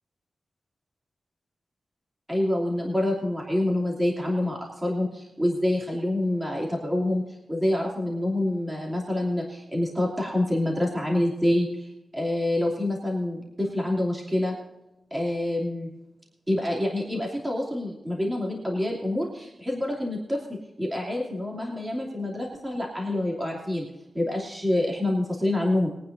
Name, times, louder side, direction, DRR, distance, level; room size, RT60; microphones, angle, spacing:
voice 1, 2.3-14.5 15.1-15.9 16.5-20.4 20.8-23.9 24.1-25.9, left 1 dB, 10° right, -3 dB, 2.8 m, -27 dB
22.5 x 9.5 x 2.7 m, 0.96 s
wide cardioid pair, 125°, 0 cm